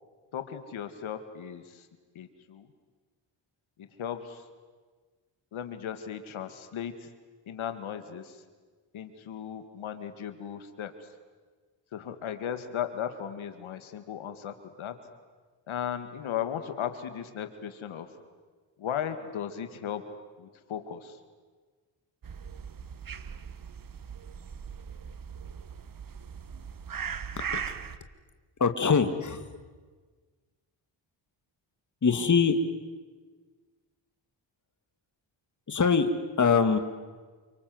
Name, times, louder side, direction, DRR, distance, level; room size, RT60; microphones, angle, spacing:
voice 1, 0.3-1.9 2.1-2.7 3.8-4.5 5.5-7.1 7.5-8.4 8.9-11.1 11.9-15.0 15.7-18.1 18.8-20.0 20.4-21.2, left 9 dB, 75° left, 9 dB, 2.3 m, -36 dB
sound 1, 22.2-28.0, right 7 dB, 45° right, 1.4 m, -39 dB
voice 2, 28.6-29.5 32.0-32.6 35.7-36.1 36.4-36.8, left 5 dB, 35° left, 8 dB, 2.2 m, -23 dB
28.5 x 25.0 x 8.0 m, 1.4 s
cardioid pair, 75°, 48 cm